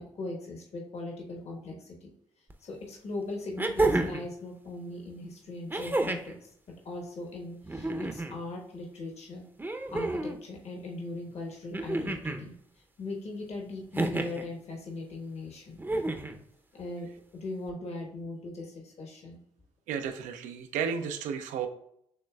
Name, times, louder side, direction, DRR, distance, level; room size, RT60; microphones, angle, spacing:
voice 1, 0.0-2.1 2.6-6.5 6.8-9.4 9.9-12.5 13.0-15.8 16.7-19.4, left 2 dB, 55° left, 0 dB, 1.2 m, -39 dB
sound 1, 2.5-2.6 3.6-4.3 5.7-6.4 7.6-8.4 9.6-10.4 11.7-12.4 13.9-14.5 15.8-16.4 17.7-17.8, right 2 dB, 15° right, 0.6 m, -30 dB
voice 2, 19.9-21.7, right 7 dB, 75° right, 7 dB, 0.5 m, -33 dB
6.4 x 3.1 x 2.3 m, 0.73 s
hypercardioid pair, 45°, 13 cm